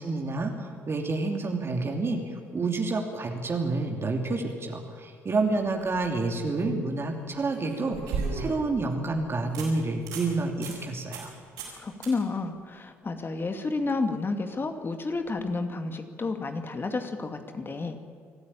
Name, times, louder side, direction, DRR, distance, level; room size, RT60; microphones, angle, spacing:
voice 1, 0.0-2.2 2.5-11.3, right 3 dB, 35° right, 2 dB, 2.8 m, -29 dB
sound 1, 5.7-6.0 7.4-8.7 9.1-9.2 9.5-9.7 10.0-10.3 10.6-10.8 11.1-11.3 11.6-11.8 12.0-12.1 15.2-15.3, right 4 dB, 65° right, 7.4 m, -34 dB
voice 2, 11.8-18.0, left 3 dB, 30° left, 7 dB, 2.3 m, -31 dB
25.0 x 15.0 x 8.9 m, 2.1 s
figure-of-eight pair, 45°, 7 cm